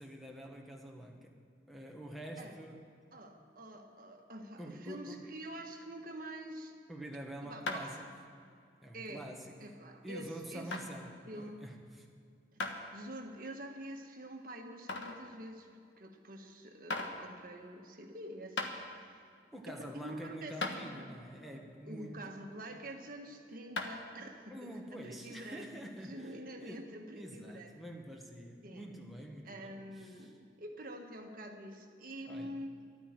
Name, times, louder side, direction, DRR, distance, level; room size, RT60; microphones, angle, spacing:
voice 1, 0.0-1.3 1.7-2.9 4.6-5.3 6.9-8.1 8.8-9.6 10.0-12.1 19.5-22.5 24.5-30.3 32.3-32.6, equal, ahead, -1 dB, 1.5 m, -47 dB
voice 2, 3.1-6.8 7.4-8.0 8.9-9.2 9.6-10.7 11.3-11.6 12.5-12.6 12.9-18.6 18.8-19.2 19.7-20.5 21.9-25.7 26.0-27.7 28.6-28.8 29.4-32.7, right 1 dB, 50° right, 3 dB, 1.5 m, -46 dB
sound 1, 7.7-8.0 8.6-8.7 9.4-9.5 10.7-10.9 12.6-12.8 13.4-13.5 14.9-15.2 16.3-16.4 16.9-17.2 18.1-18.2 18.6-18.7 20.1-20.2 20.6-20.8 23.8-24.0, left 3 dB, 85° left, 1.4 m, -37 dB
12.5 x 9.5 x 9.6 m, 2.3 s
head